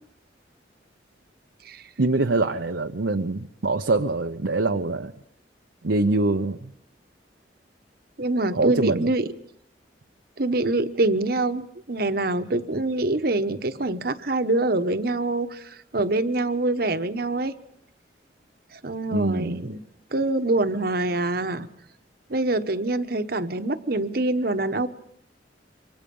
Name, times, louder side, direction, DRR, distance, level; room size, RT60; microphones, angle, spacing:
voice 1, 2.0-5.1 5.8-6.7 8.5-9.1 19.1-19.6, right 2 dB, 80° right, 6 dB, 0.8 m, -24 dB
voice 2, 8.2-9.3 10.4-17.5 18.7-19.8 20.1-21.7 22.3-24.9, right 2 dB, 55° right, 10 dB, 1.1 m, -25 dB
27.0 x 24.5 x 5.4 m, 0.68 s
head